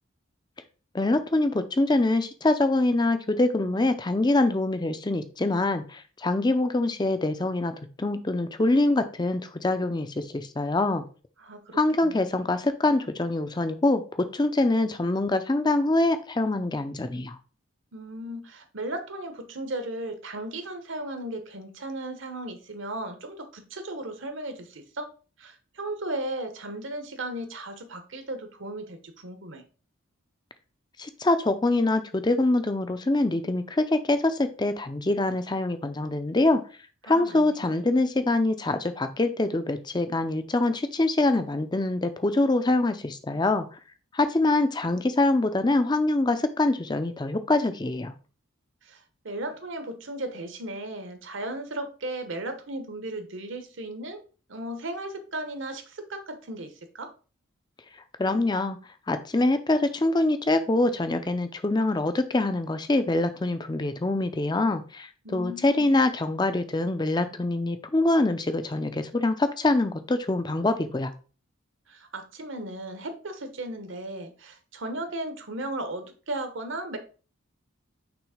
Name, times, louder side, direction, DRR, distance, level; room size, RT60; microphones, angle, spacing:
voice 1, 0.9-11.0 11.7-17.4 31.0-36.6 37.0-43.7 44.1-48.1 58.2-58.8 59.1-71.1, left 2 dB, 20° left, 10 dB, 0.5 m, -24 dB
voice 2, 11.4-12.4 17.9-25.1 25.4-29.6 37.0-37.8 48.8-54.2 54.5-57.1 65.2-65.9 71.9-77.0, right 1 dB, 60° right, 8 dB, 1.0 m, -36 dB
6.1 x 3.1 x 4.9 m, 0.37 s
head